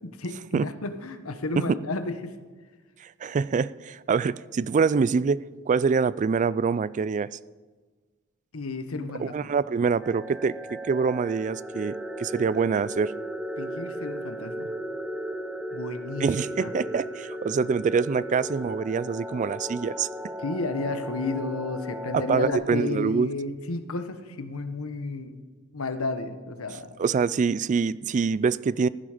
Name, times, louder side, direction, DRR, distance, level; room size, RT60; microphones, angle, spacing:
voice 1, 0.0-2.3 8.5-9.5 13.6-14.7 15.7-16.7 20.4-25.3 25.7-26.9, left 3 dB, 85° left, 9 dB, 1.1 m, -32 dB
voice 2, 3.0-7.3 9.2-13.1 16.2-20.1 22.1-23.3 27.0-28.9, right 5 dB, 35° right, 19 dB, 0.3 m, -25 dB
sound 1, 10.0-22.5, equal, 5° right, 0.7 m, -36 dB
15.0 x 11.0 x 5.0 m, 1.4 s
head